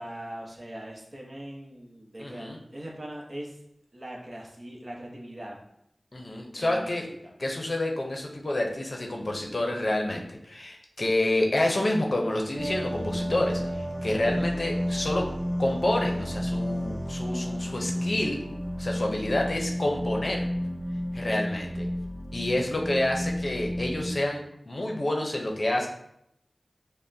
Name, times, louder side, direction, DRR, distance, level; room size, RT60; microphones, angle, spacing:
voice 1, 0.0-3.6 3.9-5.6 6.5-7.0 21.3-21.5, right 1 dB, 45° right, -2 dB, 0.8 m, -41 dB
voice 2, 2.2-2.6 6.1-7.0 7.4-15.3 15.6-18.4 18.8-20.5 21.1-21.9 22.3-25.9, left 1 dB, 50° left, 1 dB, 0.6 m, -28 dB
sound 1, 12.6-24.2, equal, 30° right, 1.2 m, -31 dB
5.3 x 2.1 x 2.6 m, 0.75 s
wide cardioid pair, 60°, 0 cm